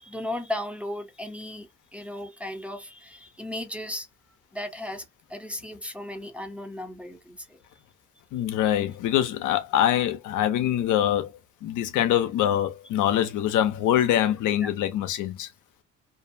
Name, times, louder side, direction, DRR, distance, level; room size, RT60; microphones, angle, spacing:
voice 1, 0.0-1.7 1.9-4.1 4.5-5.0 5.3-7.4 14.6-14.7, left 1 dB, 5° right, 0.5 m, -35 dB
voice 2, 8.3-11.3 11.6-15.5, left 11 dB, 80° left, 0.6 m, -24 dB
2.6 x 2.1 x 2.5 m
cardioid pair, 90°, 30 cm